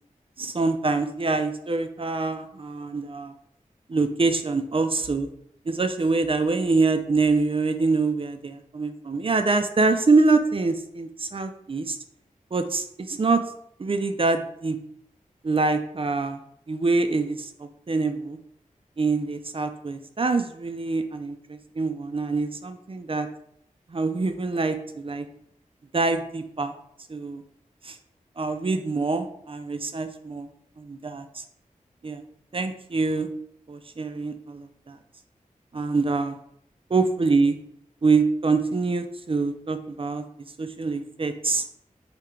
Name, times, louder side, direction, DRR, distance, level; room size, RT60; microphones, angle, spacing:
voice 1, 0.4-3.3 3.9-5.3 5.7-12.0 12.5-13.4 13.8-14.8 15.4-16.4 16.7-18.4 19.0-23.3 23.9-25.2 25.9-26.7 27.1-27.4 27.8-28.0 28.4-30.5 30.8-31.4 32.0-32.2 32.5-33.3 33.7-35.0 35.7-36.4 36.9-37.6 38.0-40.2 40.6-41.6, right 3 dB, 40° right, 8 dB, 0.5 m, -25 dB
3.6 x 2.9 x 4.4 m, 0.71 s
wide cardioid pair, 60°, 14 cm